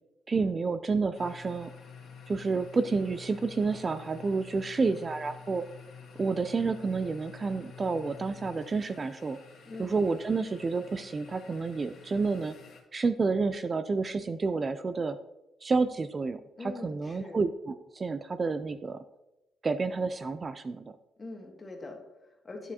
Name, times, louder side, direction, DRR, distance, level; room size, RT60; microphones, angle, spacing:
voice 1, 0.3-1.7 2.3-5.6 6.2-9.4 9.8-12.6 12.9-15.2 15.6-19.0 19.6-20.8, right 4 dB, 30° right, 11 dB, 0.3 m, -29 dB
sound 1, 1.1-12.8, left 6 dB, 70° left, 1.7 m, -49 dB
voice 2, 9.6-10.0 16.6-17.4 21.2-22.7, left 3 dB, 30° left, 1 dB, 1.6 m, -43 dB
9.4 x 6.7 x 2.8 m, 0.94 s
cardioid pair, 105°, 0 cm